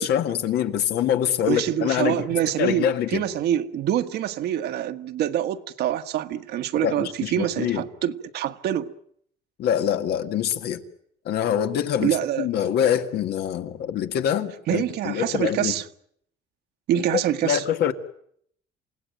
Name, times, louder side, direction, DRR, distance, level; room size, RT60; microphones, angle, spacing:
voice 1, 0.0-2.2 2.6-3.2 6.8-7.8 9.6-10.8 11.3-12.1 12.4-15.7 17.4-17.9, left 9 dB, 75° left, 1.9 m, -24 dB
voice 2, 1.5-8.9 12.0-12.5 14.7-15.9 16.9-17.6, right 11 dB, 75° right, 1.5 m, -25 dB
28.0 x 17.0 x 9.2 m
cardioid pair, 110°, 17 cm